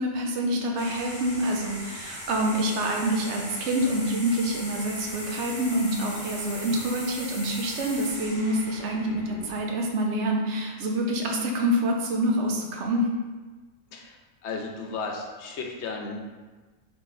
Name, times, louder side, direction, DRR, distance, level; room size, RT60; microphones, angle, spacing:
voice 1, 0.0-9.2 9.5-13.1, right 1 dB, 65° right, 1 dB, 0.9 m, -26 dB
sound 1, 0.8-9.9, equal, 10° right, 1.0 m, -39 dB
voice 2, 9.0-9.5 13.9-16.2, left 4 dB, 65° left, 2 dB, 0.9 m, -35 dB
3.8 x 3.3 x 4.0 m, 1.3 s
omnidirectional pair, 1.4 m